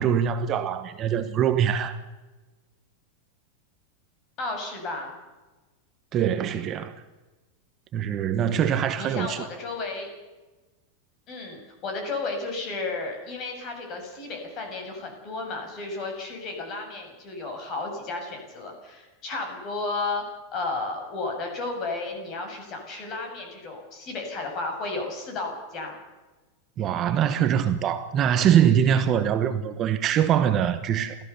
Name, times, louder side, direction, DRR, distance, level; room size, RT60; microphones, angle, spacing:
voice 1, 0.0-2.0 6.1-6.9 7.9-9.4 26.8-31.2, right 9 dB, 25° right, 1.1 m, -23 dB
voice 2, 4.4-5.1 9.0-10.1 11.3-20.2 20.5-26.0, left 3 dB, 30° left, 6.4 m, -33 dB
29.5 x 14.5 x 6.9 m
supercardioid pair, 165°, 0 cm